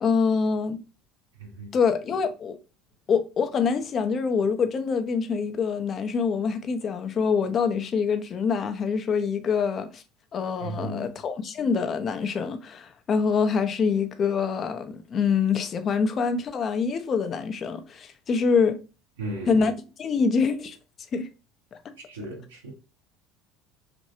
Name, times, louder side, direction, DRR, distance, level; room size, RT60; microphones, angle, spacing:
voice 1, 0.0-0.8 1.7-2.6 3.1-10.0 10.3-18.8 19.5-19.7 20.0-20.8 21.1-21.3, left 5 dB, 40° left, 0.5 m, -25 dB
voice 2, 1.4-1.7 10.6-11.2 19.2-19.6 22.1-22.7, right 1 dB, 80° right, 0.6 m, -35 dB
3.0 x 2.6 x 2.7 m
figure-of-eight pair, 65°, 0 cm